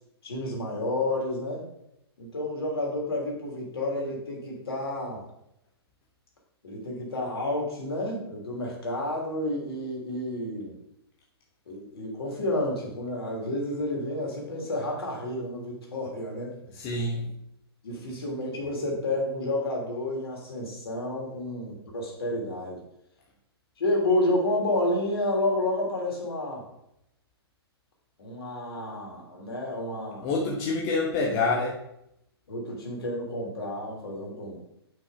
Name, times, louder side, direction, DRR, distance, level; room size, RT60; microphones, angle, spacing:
voice 1, 0.2-1.6 2.2-5.2 6.6-10.7 11.7-16.6 16.9-17.2 17.8-22.8 23.8-26.7 28.2-30.3 32.5-34.6, left 1 dB, 65° left, -1 dB, 3.0 m, -30 dB
voice 2, 16.7-17.3 30.2-31.8, left 3 dB, 35° left, -1 dB, 1.1 m, -27 dB
6.0 x 5.6 x 4.9 m, 0.79 s
figure-of-eight pair, 120°, 14 cm